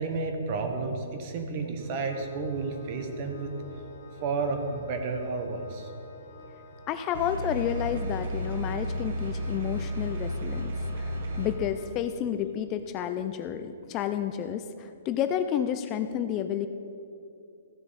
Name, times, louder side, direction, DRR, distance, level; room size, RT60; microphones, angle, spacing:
voice 1, 0.0-3.5 4.2-5.9, right 4 dB, 40° right, 5 dB, 1.2 m, -31 dB
Organ, 1.7-12.5, left 2 dB, 40° left, 1.2 m, -51 dB
voice 2, 6.9-16.7, left 9 dB, 25° left, 9 dB, 0.4 m, -31 dB
sound 1, 7.1-11.5, equal, 60° right, 1.2 m, -32 dB
14.5 x 6.7 x 4.2 m, 2.6 s
hypercardioid pair, 155°, 0 cm